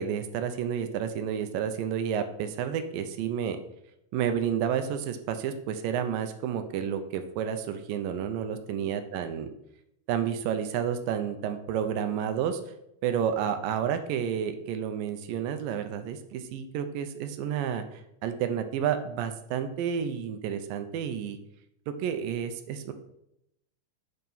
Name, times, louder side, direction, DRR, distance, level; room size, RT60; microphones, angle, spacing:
voice 1, 0.0-3.6 4.1-9.5 10.1-12.6 13.0-21.4 21.9-22.9, right 8 dB, 75° right, 9 dB, 2.3 m, -30 dB
9.4 x 4.5 x 5.5 m, 0.79 s
omnidirectional pair, 4.3 m